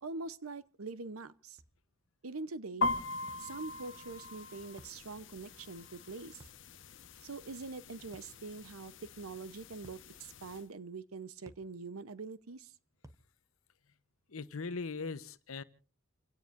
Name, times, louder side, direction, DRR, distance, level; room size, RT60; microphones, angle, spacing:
voice 1, 0.0-1.6 2.2-2.9 3.4-6.5 7.2-12.7, right 3 dB, 90° right, 0.9 m, -44 dB
sound 1, 1.6-1.8 3.3-3.5 4.8-5.0 6.4-6.7 8.1-8.4 9.8-10.1 11.5-11.7 13.0-13.3, right 1 dB, 15° right, 0.9 m, -56 dB
sound 2, 2.8-10.6, left 2 dB, 60° left, 1.1 m, -41 dB
voice 2, 14.3-15.6, left 4 dB, 80° left, 1.0 m, -40 dB
29.5 x 17.0 x 2.6 m
head